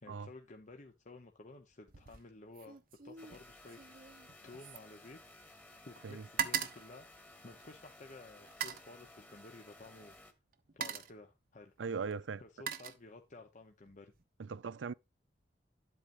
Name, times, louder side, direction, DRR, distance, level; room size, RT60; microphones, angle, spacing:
voice 1, 0.0-2.8 3.0-5.2 5.6-7.1 7.4-10.2 10.7-11.7 12.4-14.1, left 2 dB, 45° left, 0.9 m, -54 dB
sound 1, 1.9-2.3 2.5-5.7 6.0-7.9 8.5-8.9 10.0-10.1 10.5-11.3 12.1-13.5 13.9-14.2, right 8 dB, 50° right, 0.9 m, -41 dB
sound 2, 3.2-10.3, left 1 dB, 10° left, 1.4 m, -57 dB
voice 2, 11.8-12.4 14.4-14.9, right 5 dB, 90° right, 0.5 m, -39 dB
10.5 x 8.1 x 2.6 m
head